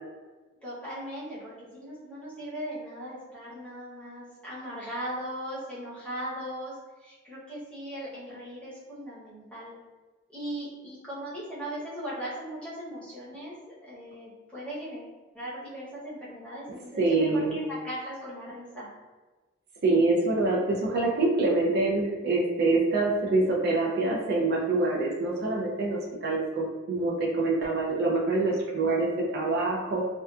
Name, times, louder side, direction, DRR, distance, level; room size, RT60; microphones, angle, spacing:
voice 1, 0.6-6.8 7.0-9.7 10.3-13.6 13.9-18.9, right 1 dB, 5° left, -9 dB, 0.8 m, -38 dB
voice 2, 17.0-17.6 19.8-30.0, right 2 dB, 50° right, -3 dB, 0.4 m, -25 dB
2.6 x 2.3 x 2.3 m, 1.3 s
head